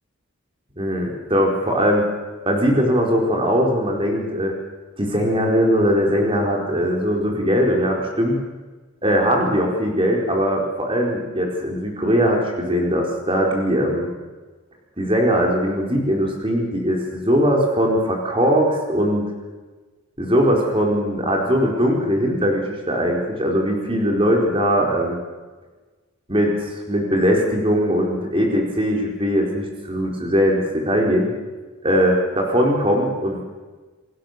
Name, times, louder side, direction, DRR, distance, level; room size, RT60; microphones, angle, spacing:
voice 1, 0.8-2.0 2.4-4.5 5.0-8.4 9.0-14.1 15.0-19.2 20.2-25.2 26.3-31.3 31.8-33.4, equal, 25° right, 0 dB, 4.6 m, -20 dB
28.5 x 16.0 x 6.8 m, 1.3 s
head